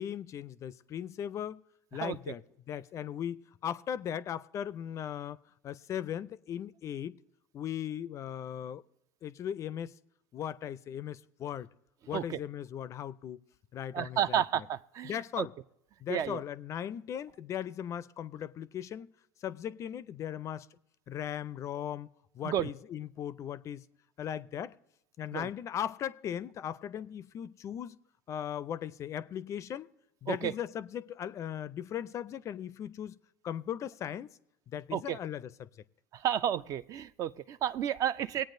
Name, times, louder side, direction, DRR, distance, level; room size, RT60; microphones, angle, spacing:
voice 1, 0.0-1.6 1.9-2.4 2.7-5.4 5.6-7.2 7.5-8.8 9.2-9.9 10.3-11.7 12.1-13.4 13.7-14.4 15.0-15.5 16.0-19.1 19.4-20.7 21.1-22.1 22.3-23.8 24.2-24.8 25.2-28.0 28.3-29.9 30.2-33.1 33.4-34.4 34.7-35.7, left 9 dB, 40° left, 0.4 m, -38 dB
voice 2, 2.0-2.3 12.1-12.4 13.9-15.5 16.1-16.4 22.4-22.7 25.3-25.5 30.3-30.5 34.9-35.2 36.1-38.4, right 10 dB, 45° right, 0.4 m, -32 dB
21.0 x 8.7 x 2.6 m
hypercardioid pair, 85°, 8 cm